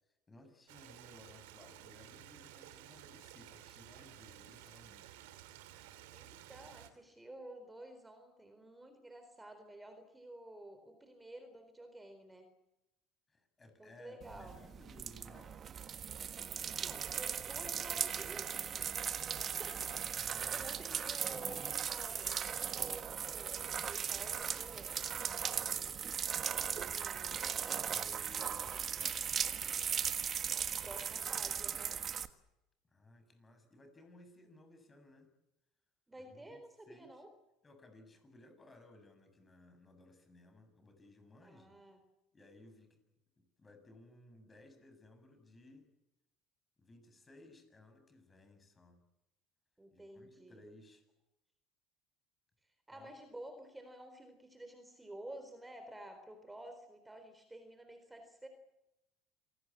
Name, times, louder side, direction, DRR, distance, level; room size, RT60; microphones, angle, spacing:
voice 1, 0.1-5.1 13.3-15.6 19.3-19.8 20.1-21.0 25.2-26.1 27.1-27.2 27.8-29.9 32.8-35.3 36.1-36.6 36.9-37.2 37.6-41.8 42.3-43.0 43.4-45.9 46.8-49.0 49.9-51.0 52.9-53.1, left 1 dB, 25° left, 8 dB, 7.1 m, -60 dB
Stream, 0.7-6.9, right 13 dB, 75° right, 2.6 m, -54 dB
voice 2, 6.1-12.5 13.8-14.6 16.8-18.9 19.3-20.2 20.5-25.0 26.7-27.4 30.8-32.0 36.1-37.3 41.4-42.0 49.8-50.6 52.9-58.5, right 1 dB, 10° right, 8 dB, 4.0 m, -52 dB
sound 1, 14.2-32.3, right 8 dB, 40° right, 1.5 m, -38 dB
27.0 x 18.0 x 8.6 m, 0.92 s
hypercardioid pair, 75°, 0 cm